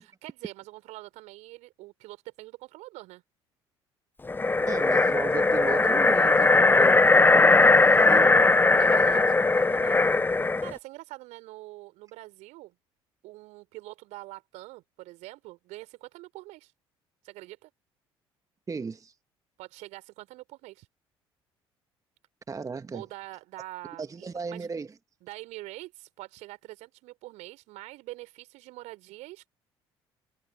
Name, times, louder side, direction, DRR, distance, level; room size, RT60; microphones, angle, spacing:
voice 1, 0.0-3.2 8.8-10.1 10.6-12.8 13.2-16.7 17.2-17.7 19.6-20.9 22.9-24.7 25.2-29.5, right 19 dB, 60° right, 4.0 m, -44 dB
sound 1, 4.3-10.7, left 3 dB, 15° left, 0.7 m, -19 dB
voice 2, 4.7-8.3 18.7-19.1 22.5-23.0 24.0-24.9, right 4 dB, 25° right, 1.4 m, -35 dB
figure-of-eight pair, 55°, 13 cm